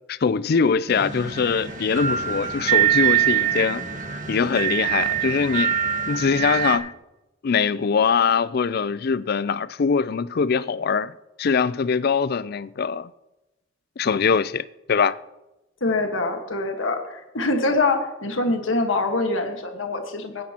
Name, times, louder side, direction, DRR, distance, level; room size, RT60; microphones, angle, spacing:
voice 1, 0.1-3.9 4.3-5.7 6.1-6.9 7.4-11.1 11.4-13.1 14.0-15.2, left 5 dB, 50° left, 0.4 m, -22 dB
sound 1, 0.9-6.8, right 10 dB, 40° right, 1.6 m, -24 dB
voice 2, 15.8-20.4, left 2 dB, 80° left, 1.5 m, -24 dB
20.5 x 10.5 x 2.9 m
head